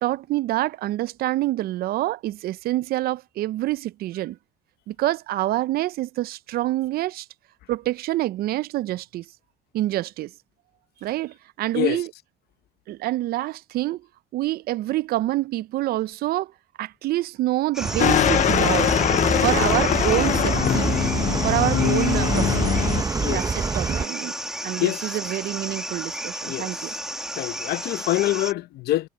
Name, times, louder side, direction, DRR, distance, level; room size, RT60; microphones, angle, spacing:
voice 1, 0.0-4.4 4.9-7.3 7.7-9.2 9.7-10.3 11.0-12.1 12.9-14.0 14.3-16.5 16.8-19.0 19.4-20.9 21.3-22.7 23.3-24.4 24.6-27.0, right 16 dB, 65° right, 0.4 m, -26 dB
sound 1, 17.7-28.5, right 1 dB, 5° right, 1.6 m, -33 dB
Bus, 17.8-24.1, right 4 dB, 20° right, 0.8 m, -26 dB
sound 2, 18.0-23.0, left 11 dB, 45° left, 0.4 m, -22 dB
voice 2, 23.1-23.5 24.8-25.2 26.5-26.7 27.3-29.1, left 16 dB, 70° left, 0.8 m, -25 dB
cardioid pair, 110°, 17 cm